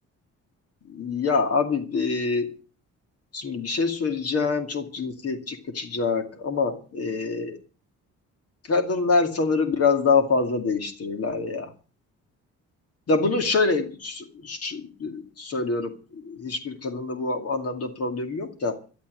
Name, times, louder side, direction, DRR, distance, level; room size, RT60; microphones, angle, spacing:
voice 1, 0.9-2.5 3.3-7.6 8.7-11.7 13.1-18.8, left 4 dB, 55° left, 6 dB, 2.3 m, -25 dB
12.5 x 12.0 x 6.4 m, 0.38 s
cardioid pair, 90°, 30 cm